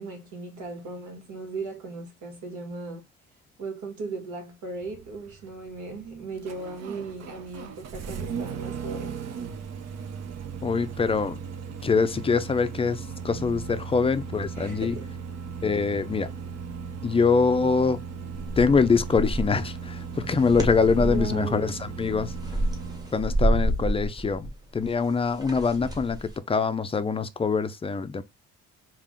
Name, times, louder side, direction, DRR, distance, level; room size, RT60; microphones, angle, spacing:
voice 1, 0.0-3.1 3.6-9.2 14.5-15.2 20.9-21.8, right 3 dB, 75° right, 1.6 m, -37 dB
Engine starting, 4.8-23.2, right 6 dB, 60° right, 0.7 m, -37 dB
voice 2, 10.6-11.4 11.8-15.0 15.6-16.3 17.0-18.0 18.6-22.3 23.1-28.2, left 5 dB, 20° left, 0.4 m, -24 dB
sound 1, 18.3-19.6 20.2-21.4 22.0-26.3, right 1 dB, 15° right, 0.9 m, -28 dB
3.6 x 2.4 x 3.6 m
cardioid pair, 90°, 30 cm